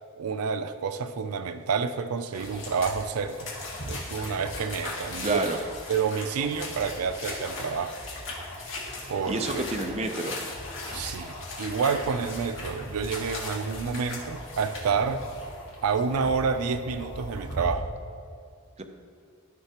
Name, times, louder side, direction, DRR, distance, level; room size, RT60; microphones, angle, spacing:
voice 1, 0.2-3.5 3.8-5.4 5.9-7.9 9.1-9.6 10.9-15.2 15.8-17.9, right 5 dB, 85° right, 10 dB, 0.4 m, -29 dB
sound 1, 2.3-17.7, left 2 dB, 60° left, 1.9 m, -38 dB
sound 2, 2.5-17.9, left 1 dB, 5° right, 1.8 m, -46 dB
voice 2, 5.2-5.6 8.9-10.4 18.8-18.9, right 2 dB, 30° right, 4 dB, 0.5 m, -30 dB
13.0 x 5.7 x 2.9 m, 2.3 s
head